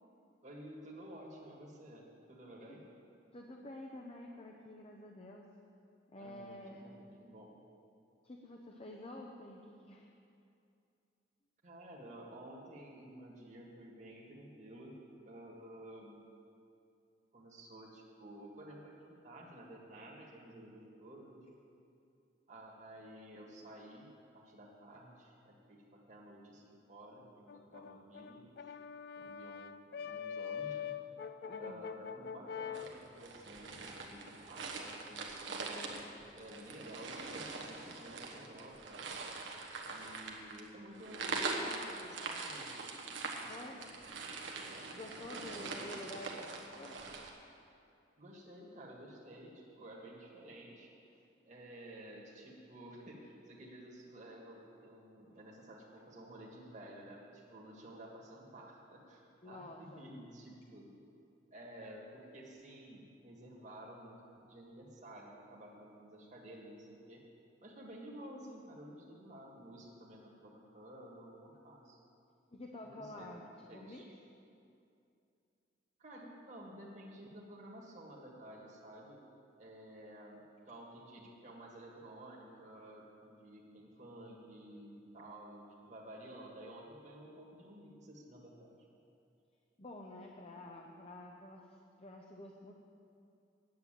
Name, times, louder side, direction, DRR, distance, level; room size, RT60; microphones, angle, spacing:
voice 1, 0.4-2.9 6.2-7.6 11.6-15.0 15.3-16.2 17.3-21.5 22.5-28.8 29.2-31.0 31.6-36.1 36.3-39.1 39.9-42.8 43.1-43.9 45.3-45.9 48.2-50.9 51.5-60.9 61.5-64.2 64.4-67.2 67.6-72.0 72.8-73.4 73.7-74.0 76.0-79.2 79.6-88.8, right 1 dB, 40° right, -3 dB, 1.8 m, -52 dB
voice 2, 3.3-5.5 6.1-6.9 8.2-10.1 31.4-31.8 43.5-43.8 44.8-47.0 59.4-60.0 72.5-74.0 89.8-92.7, left 1 dB, 30° left, 0 dB, 0.7 m, -49 dB
Brass instrument, 27.5-32.9, left 7 dB, 55° left, 0.3 m, -43 dB
sound 1, 32.7-47.3, right 3 dB, 75° right, 1.3 m, -43 dB
9.5 x 7.7 x 9.0 m, 2.6 s
head